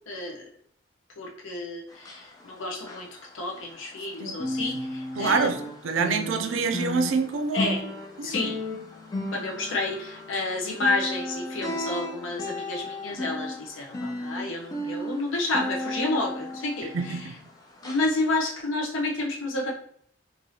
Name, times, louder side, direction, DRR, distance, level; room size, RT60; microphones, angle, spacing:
voice 1, 0.1-0.5 1.2-3.1 3.3-5.5 7.5-7.8 8.2-8.6 9.3-17.4 17.8-19.7, left 2 dB, 85° left, -1 dB, 0.7 m, -30 dB
sound 1, 1.9-4.1 4.3-17.5 17.8-18.1 18.5-18.6, left 1 dB, 20° left, 0.4 m, -34 dB
voice 2, 5.2-7.9 8.2-8.5 16.9-17.4, right 4 dB, 90° right, 5 dB, 0.4 m, -27 dB
3.1 x 2.6 x 2.7 m, 0.63 s
head